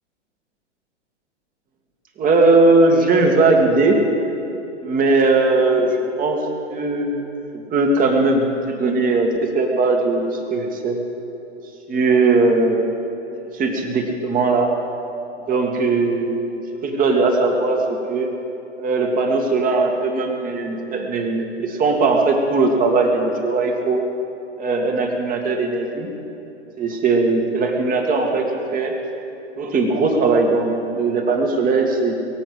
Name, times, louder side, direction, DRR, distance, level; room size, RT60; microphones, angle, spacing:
voice 1, 2.2-4.0 4.8-5.9 6.2-6.4 6.7-7.1 7.7-11.0 11.9-12.9 13.5-14.8 15.5-18.3 18.8-24.0 24.6-26.1 26.8-28.9 29.6-32.1, right 3 dB, 25° right, 2 dB, 2.0 m, -19 dB
22.5 x 8.0 x 7.9 m, 2.9 s
figure-of-eight pair, 105°, 36 cm